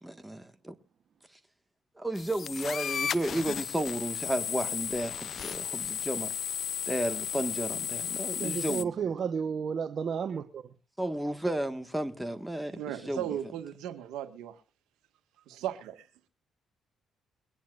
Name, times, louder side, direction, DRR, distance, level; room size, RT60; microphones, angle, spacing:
voice 1, 0.0-0.8 1.9-6.3 6.9-9.1 11.0-13.3, right 1 dB, 5° right, 1.5 m, -33 dB
sound 1, 2.1-8.8, left 8 dB, 55° left, 0.6 m, -34 dB
voice 2, 8.4-10.6, right 6 dB, 55° right, 0.9 m, -32 dB
voice 3, 12.7-14.6 15.5-16.1, right 11 dB, 85° right, 1.5 m, -36 dB
22.5 x 10.0 x 2.4 m
cardioid pair, 80°, 0 cm